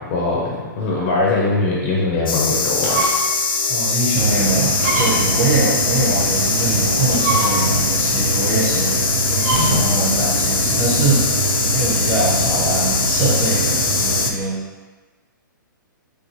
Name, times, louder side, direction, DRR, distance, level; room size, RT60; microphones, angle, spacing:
voice 1, 0.0-3.1 5.1-5.3, left 3 dB, 30° left, -3 dB, 0.5 m, -21 dB
sound 1, 2.3-14.3, left 4 dB, 85° left, 0.4 m, -21 dB
sound 2, 2.7-3.4 3.9-4.0 4.7-5.4 6.9-7.9 9.3-10.0, right 2 dB, 50° right, 0.7 m, -23 dB
voice 2, 3.7-9.0 9.3-14.6, right 2 dB, 25° right, -7 dB, 1.1 m, -23 dB
sound 3, 4.1-14.3, right 3 dB, 90° right, 0.4 m, -24 dB
3.2 x 2.5 x 3.0 m, 1.3 s
hypercardioid pair, 150°, 11 cm